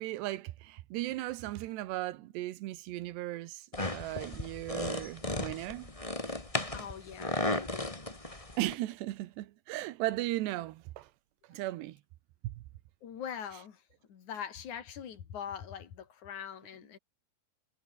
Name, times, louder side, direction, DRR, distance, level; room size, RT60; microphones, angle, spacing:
voice 1, 0.0-3.7 3.9-5.9 8.6-11.1 11.5-12.0 12.4-12.6, right 16 dB, 80° right, 3.1 m, -36 dB
sound 1, 3.7-8.7, left 2 dB, 10° left, 2.0 m, -35 dB
voice 2, 6.7-8.0 13.0-13.8 14.1-17.0, left 8 dB, 50° left, 3.5 m, -43 dB
omnidirectional pair, 5.1 m